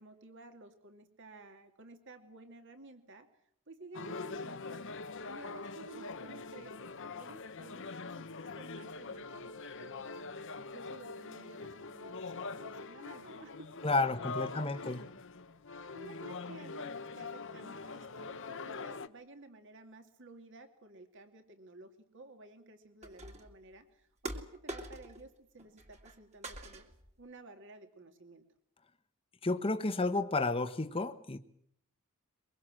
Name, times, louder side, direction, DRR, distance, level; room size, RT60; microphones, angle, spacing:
voice 1, 0.0-3.3 3.7-4.8 5.2-13.7 14.3-14.8 15.9-26.9 27.2-28.4, right 2 dB, 55° right, 7 dB, 2.6 m, -54 dB
sound 1, 3.9-19.1, left 4 dB, 55° left, 1.0 m, -43 dB
voice 2, 13.8-15.0 29.4-31.4, left 3 dB, 25° left, 7 dB, 1.1 m, -31 dB
sound 2, 23.0-23.6 24.2-25.3 25.6-26.2 26.4-27.1, right 1 dB, 30° right, 2.4 m, -44 dB
23.0 x 23.0 x 7.7 m, 0.67 s
head